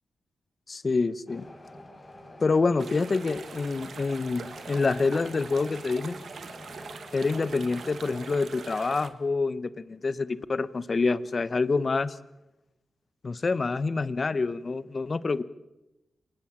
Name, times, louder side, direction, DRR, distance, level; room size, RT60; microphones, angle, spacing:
voice 1, 0.7-1.5 2.4-6.2 7.1-12.2 13.2-15.5, left 4 dB, 45° left, 16 dB, 1.1 m, -27 dB
sound 1, 1.3-8.4, left 1 dB, 30° left, 5.0 m, -47 dB
sound 2, 2.8-9.1, right 5 dB, 70° right, 1.7 m, -43 dB
26.0 x 20.5 x 7.5 m, 0.95 s
cardioid pair, 60°, 0 cm